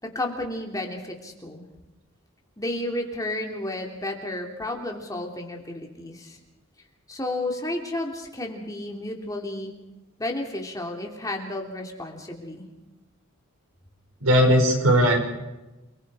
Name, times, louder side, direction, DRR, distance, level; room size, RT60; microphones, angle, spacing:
voice 1, 0.0-1.6 2.6-6.4 7.1-9.7 10.2-12.6, left 1 dB, 15° left, 1 dB, 3.0 m, -32 dB
voice 2, 14.2-15.2, equal, 75° right, 2 dB, 6.1 m, -18 dB
29.5 x 21.5 x 5.0 m, 1.0 s
head